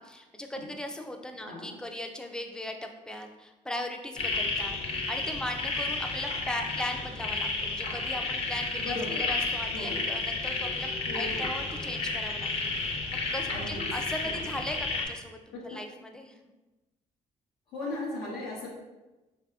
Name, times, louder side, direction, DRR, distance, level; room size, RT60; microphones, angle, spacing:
voice 1, 0.0-10.9 11.1-13.0 13.3-16.3, left 1 dB, 5° left, 4 dB, 0.3 m, -38 dB
sound 1, 4.2-15.0, left 3 dB, 45° left, 0.6 m, -32 dB
voice 2, 8.8-9.4 9.7-10.1 11.1-11.5 13.5-13.8 14.2-14.5 15.5-15.8 17.7-18.7, left 2 dB, 90° left, -6 dB, 0.7 m, -37 dB
3.3 x 2.7 x 2.3 m, 1.1 s
cardioid pair, 85°, 14 cm